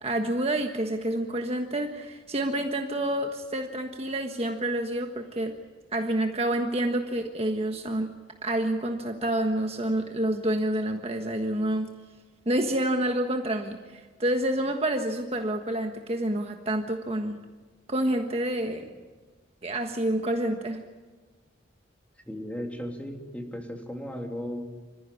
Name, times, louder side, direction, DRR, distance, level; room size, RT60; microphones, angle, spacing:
voice 1, 0.0-5.6 5.9-8.1 8.4-11.9 12.4-17.4 17.9-18.8 19.6-20.8, right 1 dB, 35° right, 4 dB, 1.5 m, -28 dB
voice 2, 22.3-24.6, equal, 10° left, 2 dB, 3.0 m, -36 dB
26.5 x 15.0 x 9.9 m, 1.3 s
head